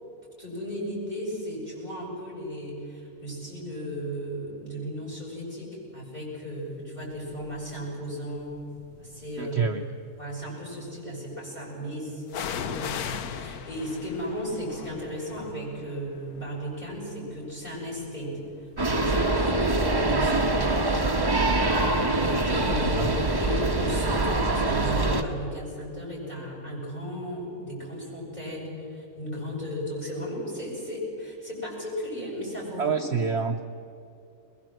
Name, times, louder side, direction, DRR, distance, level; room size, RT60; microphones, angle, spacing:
voice 1, 0.4-8.6 9.0-9.6 10.2-20.6 21.6-33.0, equal, 25° left, -4 dB, 7.8 m, -35 dB
sound 1, 7.3-7.7 8.4-9.4 12.3-19.9 20.2-20.3, left 8 dB, 80° left, 1.3 m, -39 dB
voice 2, 9.4-9.9 22.9-23.1 32.8-33.6, right 5 dB, 55° right, 5 dB, 0.9 m, -27 dB
sound 2, 18.8-25.2, right 2 dB, 15° right, 1.2 m, -24 dB
21.5 x 21.5 x 7.8 m, 2.7 s
omnidirectional pair, 1.6 m